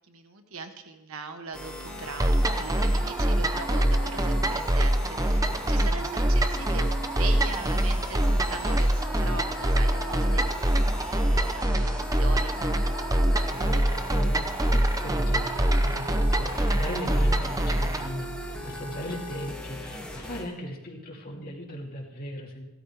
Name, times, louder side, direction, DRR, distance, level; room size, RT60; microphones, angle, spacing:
voice 1, 0.1-12.5, right 4 dB, 75° right, 6 dB, 1.3 m, -40 dB
sound 1, 1.5-20.4, equal, 5° left, 2.2 m, -38 dB
sound 2, 2.2-18.1, right 1 dB, 15° right, 0.7 m, -24 dB
voice 2, 13.5-22.6, equal, 45° left, -1 dB, 2.7 m, -37 dB
15.5 x 13.0 x 4.9 m, 1.1 s
head